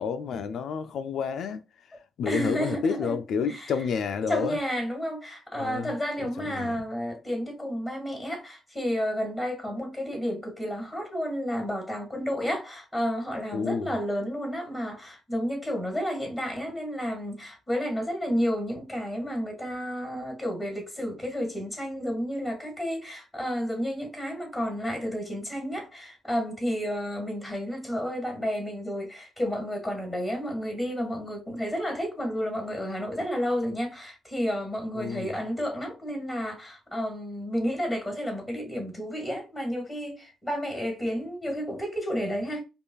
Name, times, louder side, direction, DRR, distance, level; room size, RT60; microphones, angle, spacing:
voice 1, 0.0-1.6 2.2-4.6 5.5-6.0 6.4-6.8 13.5-13.9 34.9-35.3, left 6 dB, 70° left, 0.3 m, -30 dB
voice 2, 2.3-3.2 3.5-3.7 4.3-42.6, equal, 10° left, 1.9 m, -31 dB
5.3 x 2.3 x 2.4 m
cardioid pair, 90°, 0 cm